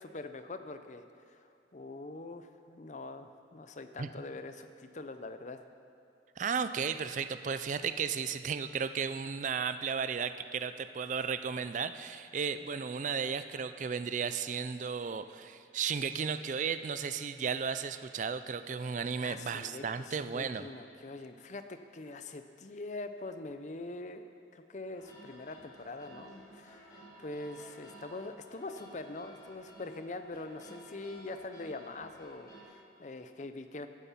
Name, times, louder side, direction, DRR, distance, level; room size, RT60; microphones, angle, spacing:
voice 1, 0.0-5.6 19.2-21.6 21.9-24.2 24.5-33.9, left 2 dB, 40° left, 9 dB, 0.6 m, -43 dB
voice 2, 6.4-20.7, right 6 dB, 45° right, 11 dB, 0.4 m, -34 dB
sound 1, 24.9-32.6, right 1 dB, 20° left, 2.3 m, -54 dB
15.0 x 8.3 x 5.8 m, 2.5 s
head